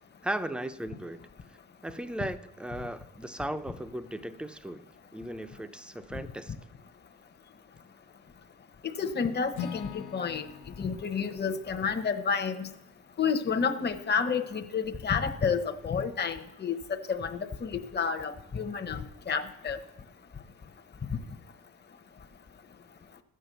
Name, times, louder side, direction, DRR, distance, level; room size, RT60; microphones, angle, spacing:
voice 1, 0.2-1.2 1.8-4.8 5.1-6.5, right 1 dB, 5° right, 10 dB, 0.6 m, -36 dB
voice 2, 9.0-10.5 10.8-12.7 13.2-19.8, left 6 dB, 35° left, 6 dB, 1.0 m, -30 dB
Acoustic guitar / Strum, 9.5-13.6, left 8 dB, 90° left, 1.0 m, -44 dB
13.0 x 7.8 x 6.8 m, 0.96 s
cardioid pair, 90°, 30 cm